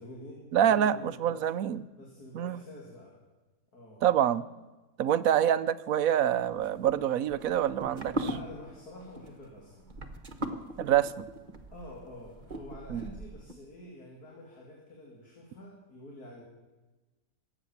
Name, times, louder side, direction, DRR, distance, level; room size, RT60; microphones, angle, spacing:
voice 1, 0.0-1.5 1.9-3.2 3.7-4.0 8.2-9.9 11.7-16.4, left 1 dB, 70° left, -2 dB, 3.3 m, -47 dB
voice 2, 0.5-1.8 2.3-2.6 4.0-4.4 5.0-8.1 10.8-11.3 12.9-13.0, right 10 dB, 65° right, 14 dB, 1.0 m, -26 dB
sound 1, 6.5-13.5, right 1 dB, 30° right, 1.3 m, -40 dB
22.5 x 9.0 x 7.1 m, 1.2 s
omnidirectional pair, 1.7 m